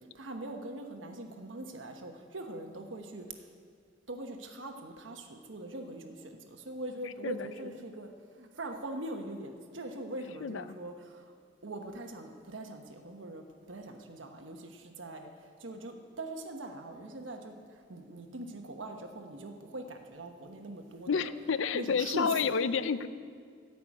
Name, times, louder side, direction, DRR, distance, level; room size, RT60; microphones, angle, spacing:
voice 1, 0.1-3.2 4.1-8.1 8.4-11.3 11.6-17.5 17.9-21.2 21.7-22.6, right 1 dB, 70° right, 5 dB, 1.2 m, -42 dB
voice 2, 21.1-23.1, left 6 dB, 70° left, 14 dB, 0.5 m, -30 dB
14.0 x 5.9 x 8.5 m, 2.1 s
head